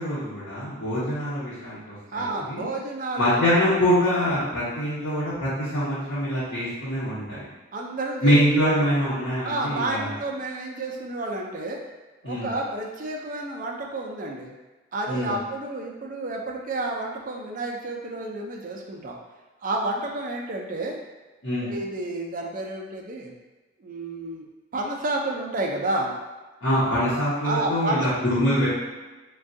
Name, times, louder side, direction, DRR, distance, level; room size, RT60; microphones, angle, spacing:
voice 1, 0.0-1.8 2.1-2.6 3.2-7.4 8.2-10.1 12.2-12.5 15.1-15.3 21.4-21.7 26.6-28.7, equal, 90° left, -13 dB, 0.9 m, -24 dB
voice 2, 2.1-3.4 7.7-8.4 9.4-11.8 12.2-14.5 14.9-19.2 19.6-21.0 21.6-23.3 23.8-24.5 24.7-26.1 27.4-28.1, right 2 dB, 45° right, 0 dB, 0.4 m, -30 dB
3.4 x 2.3 x 2.6 m, 1.2 s
head